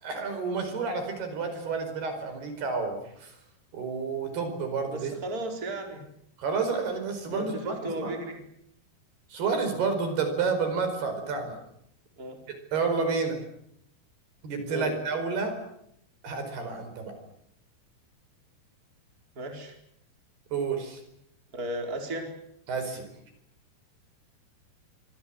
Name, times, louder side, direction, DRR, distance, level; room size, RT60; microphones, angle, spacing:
voice 1, 0.0-3.3 3.7-5.1 6.4-8.1 9.3-11.6 12.7-13.4 14.4-15.6 16.2-17.1 20.5-21.0 22.7-23.1, right 4 dB, 75° right, 7 dB, 6.9 m, -30 dB
voice 2, 4.9-6.0 7.2-8.4 12.2-12.4 14.7-15.0 19.4-19.8 21.5-22.3, right 1 dB, 20° right, 3 dB, 4.5 m, -35 dB
26.0 x 25.0 x 7.9 m, 0.74 s
omnidirectional pair, 4.6 m